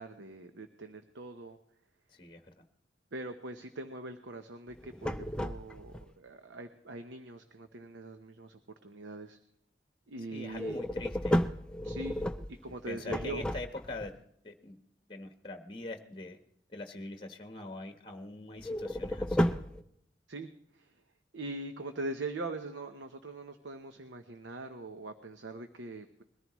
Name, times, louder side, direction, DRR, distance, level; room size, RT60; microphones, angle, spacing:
voice 1, 0.0-1.6 3.1-9.4 10.1-10.8 11.8-12.2 12.5-13.5 20.3-20.9 21.3-26.2, right 2 dB, 85° right, 7 dB, 0.9 m, -42 dB
voice 2, 2.1-2.6 10.3-11.4 11.8-12.0 12.8-14.1 14.4-14.8 15.1-16.4 16.7-19.6, left 2 dB, 25° left, 5 dB, 1.2 m, -43 dB
sound 1, 4.7-6.0 10.5-14.1 18.6-19.8, equal, 5° left, 0.5 m, -33 dB
21.5 x 14.5 x 3.1 m, 0.73 s
head